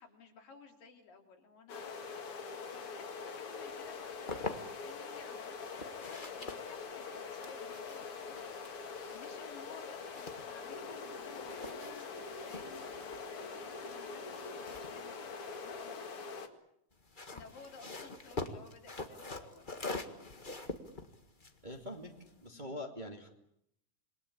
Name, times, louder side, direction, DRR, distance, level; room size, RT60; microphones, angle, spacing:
voice 1, 0.0-1.9 2.7-8.4 9.1-12.9 13.3-15.4 15.6-16.5 17.3-20.2 22.5-22.8, left 5 dB, 85° left, 2 dB, 5.0 m, -56 dB
sound 1, 1.7-16.5, left 5 dB, 45° left, 2.6 m, -44 dB
sound 2, 3.9-5.0 5.6-11.0 11.3-15.9 16.9-22.5, left 2 dB, 25° left, 1.0 m, -45 dB
voice 2, 21.6-22.1 22.4-23.3, left 1 dB, 15° right, 2 dB, 2.3 m, -43 dB
27.5 x 22.5 x 8.7 m, 0.75 s
omnidirectional pair, 3.8 m